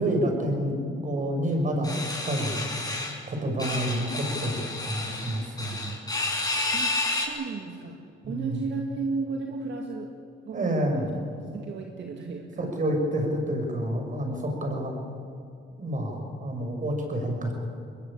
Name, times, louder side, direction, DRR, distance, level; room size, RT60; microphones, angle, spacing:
voice 1, 0.0-2.7 3.3-6.0 8.2-8.6 10.5-11.1 12.6-14.9 15.8-17.5, right 1 dB, 40° right, 3 dB, 6.5 m, -28 dB
sound 1, 1.8-3.2 3.6-7.3, left 2 dB, 20° left, 5.8 m, -30 dB
voice 2, 6.7-10.1 10.5-11.0 11.5-12.7, right 4 dB, 65° right, 3 dB, 2.2 m, -34 dB
22.0 x 20.5 x 8.8 m, 2.5 s
cardioid pair, 90°, 20 cm